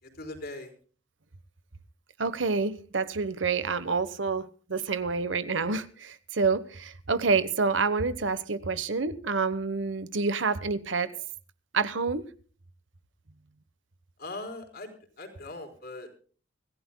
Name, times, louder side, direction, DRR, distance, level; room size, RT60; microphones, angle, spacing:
voice 1, 0.0-0.7 14.2-14.9 15.2-16.1, left 2 dB, 55° left, 4.1 m, -40 dB
voice 2, 2.2-11.1 11.7-12.2, right 4 dB, 85° right, 1.1 m, -28 dB
25.5 x 15.5 x 2.2 m
head